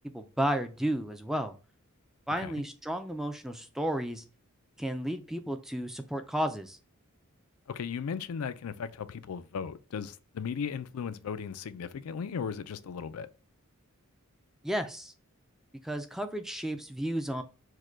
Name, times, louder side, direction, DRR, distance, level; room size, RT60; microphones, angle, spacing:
voice 1, 0.1-1.5 2.3-4.2 4.8-6.8 14.6-15.1 15.8-17.4, equal, ahead, 0.3 m, -32 dB
voice 2, 7.7-13.3, left 6 dB, 80° left, 0.4 m, -36 dB
4.8 x 2.2 x 4.4 m
head